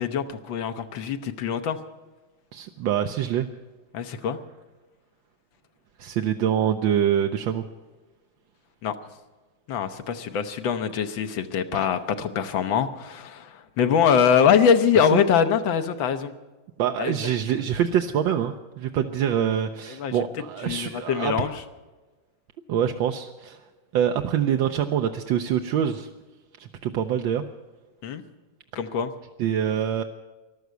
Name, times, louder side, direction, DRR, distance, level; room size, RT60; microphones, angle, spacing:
voice 1, 0.0-1.8 3.9-4.4 8.8-8.9 9.7-16.3 17.0-17.1 20.0-20.2 20.6-21.6 28.0-28.2 28.7-29.1, left 7 dB, 75° left, 8 dB, 1.6 m, -23 dB
voice 2, 2.5-3.5 6.0-7.6 15.1-15.2 16.8-21.5 22.7-23.6 23.9-26.1 26.8-27.4 29.4-30.0, right 9 dB, 80° right, 5 dB, 1.4 m, -25 dB
14.0 x 12.0 x 8.1 m, 1.2 s
omnidirectional pair, 2.2 m